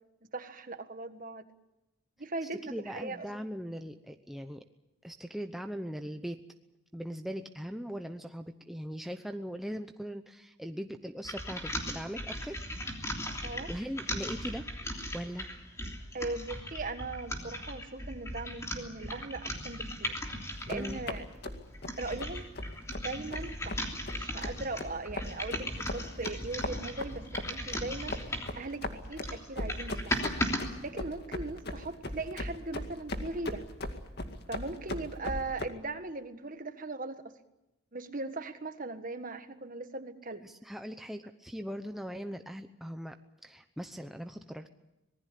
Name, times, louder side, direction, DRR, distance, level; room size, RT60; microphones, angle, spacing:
voice 1, 0.3-1.5 2.2-3.3 13.4-13.7 16.1-20.1 20.7-21.2 22.0-22.5 23.0-30.2 30.8-33.6 34.5-37.3 37.9-40.4, right 3 dB, 40° right, 9 dB, 1.5 m, -39 dB
voice 2, 2.7-4.6 5.0-6.4 6.9-12.6 13.7-14.7 15.1-15.5 20.7-21.0 40.4-43.2 43.4-44.7, equal, ahead, 6 dB, 0.8 m, -40 dB
sound 1, 11.2-21.1 21.6-28.6 29.0-30.6, left 1 dB, 15° left, 3.2 m, -37 dB
sound 2, 20.5-35.7, left 1 dB, 50° left, 2.2 m, -39 dB
26.0 x 19.5 x 8.5 m, 0.96 s
head